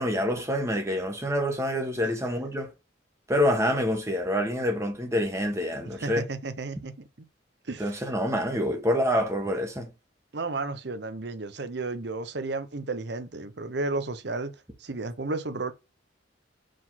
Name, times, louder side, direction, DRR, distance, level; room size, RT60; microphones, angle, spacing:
voice 1, 0.0-2.7 3.3-6.2 7.8-9.9, equal, 15° right, 1.3 m, -27 dB
voice 2, 6.0-7.1 7.6-8.0 10.3-14.5 14.8-15.7, right 3 dB, 60° right, 0.8 m, -33 dB
5.0 x 4.0 x 5.7 m
head